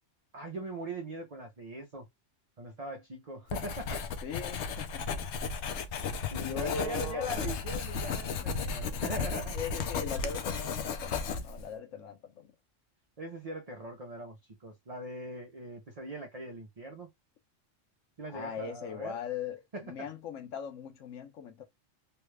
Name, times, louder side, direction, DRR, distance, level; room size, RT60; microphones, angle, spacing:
voice 1, 0.3-2.1 2.6-4.0 5.8-6.0 6.3-9.6 11.5-11.8 13.2-17.1 18.2-19.2 19.7-20.1, right 1 dB, 35° right, 0.7 m, -41 dB
Writing, 3.5-11.7, left 5 dB, 70° left, 0.9 m, -34 dB
voice 2, 4.2-5.3 6.4-7.3 9.5-12.5 18.3-21.6, left 6 dB, 85° left, 1.2 m, -40 dB
3.4 x 2.3 x 3.2 m
omnidirectional pair, 1.3 m